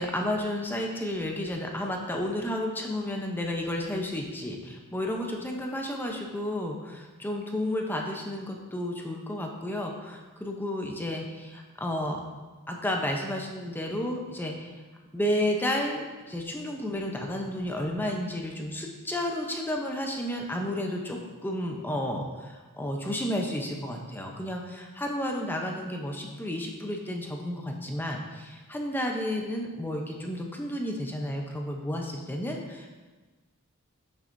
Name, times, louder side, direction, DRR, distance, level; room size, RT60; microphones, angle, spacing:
voice 1, 0.0-12.2 12.7-14.7 15.1-32.9, left 1 dB, 10° left, 1 dB, 0.7 m, -32 dB
7.9 x 6.8 x 2.6 m, 1.3 s
head